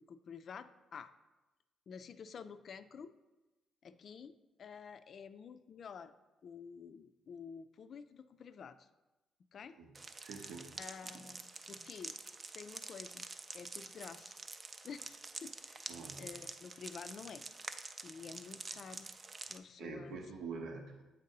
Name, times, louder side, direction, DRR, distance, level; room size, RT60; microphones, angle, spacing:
voice 1, 0.1-1.1 1.9-3.1 3.8-6.1 6.4-8.9 9.5-9.8 10.1-10.2 10.7-11.4 11.7-12.1 12.5-13.2 13.5-14.3 14.8-15.8 16.2-17.4 18.0-19.1 19.5-20.2, left 6 dB, 55° left, 12 dB, 0.3 m, -50 dB
sound 1, 9.9-19.6, right 3 dB, 30° right, 0.4 m, -48 dB
voice 2, 10.2-10.8 11.1-11.3 11.6-11.9 15.9-16.4 19.8-21.0, right 4 dB, 80° right, 3 dB, 0.8 m, -46 dB
7.7 x 2.7 x 5.3 m, 1.1 s
cardioid pair, 90°, 0 cm